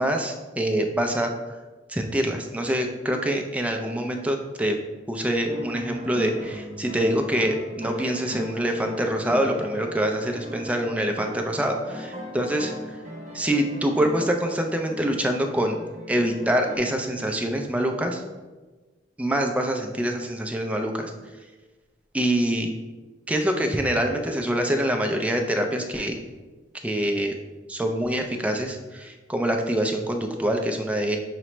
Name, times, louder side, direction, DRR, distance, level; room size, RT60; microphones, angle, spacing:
voice 1, 0.0-1.3 1.9-4.8 5.1-12.7 13.3-15.8 16.1-18.2 19.2-21.1 22.1-22.7 23.3-26.3 26.8-27.3 27.7-31.2, right 1 dB, 10° right, 3 dB, 0.4 m, -25 dB
sound 1, 5.4-16.8, left 1 dB, 40° right, 0.9 m, -38 dB
5.9 x 2.0 x 4.3 m, 1.3 s
head